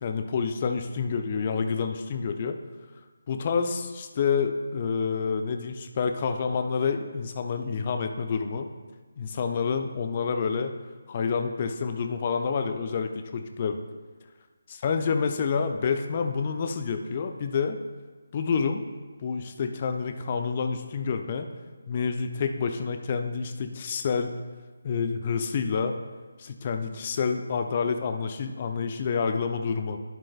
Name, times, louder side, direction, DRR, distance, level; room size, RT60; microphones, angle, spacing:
voice 1, 0.0-2.6 3.3-8.7 9.2-10.8 11.1-13.8 14.7-17.8 18.3-18.8 19.2-21.5 21.9-24.3 24.8-26.0 26.4-30.0, left 5 dB, 30° left, 7 dB, 0.5 m, -28 dB
10.5 x 9.5 x 2.3 m, 1.4 s
figure-of-eight pair, 150°, 0 cm